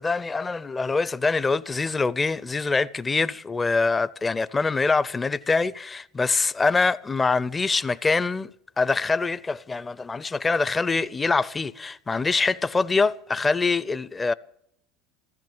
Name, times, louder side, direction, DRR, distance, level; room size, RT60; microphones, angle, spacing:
voice 1, 0.0-8.5 8.8-14.3, left 4 dB, 20° left, 0.6 m, -24 dB
14.5 x 13.5 x 7.3 m
hypercardioid pair, 80°, 0 cm